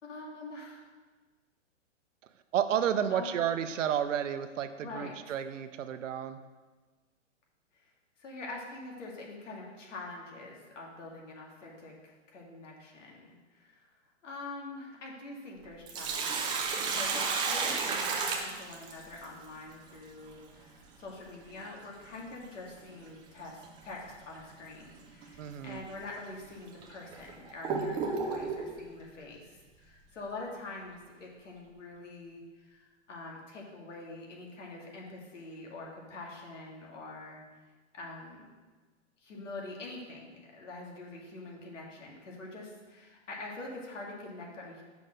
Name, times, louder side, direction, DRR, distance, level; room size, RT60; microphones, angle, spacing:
voice 1, 0.0-0.8 3.1-3.3 4.8-5.2 7.7-7.9 8.2-13.9 14.2-37.4 37.9-38.5 39.2-44.8, left 2 dB, 75° left, -2 dB, 2.0 m, -45 dB
voice 2, 2.5-6.4 25.4-25.8, right 9 dB, 75° right, 10 dB, 0.7 m, -31 dB
Sink (filling or washing), 15.6-19.2 21.6-21.7 23.6-23.8 24.3-24.4 25.2-25.4 26.0-26.1 26.8-28.7, right 4 dB, 15° right, 0.4 m, -32 dB
5.7 x 4.2 x 6.3 m, 1.3 s
hypercardioid pair, 135°, 37 cm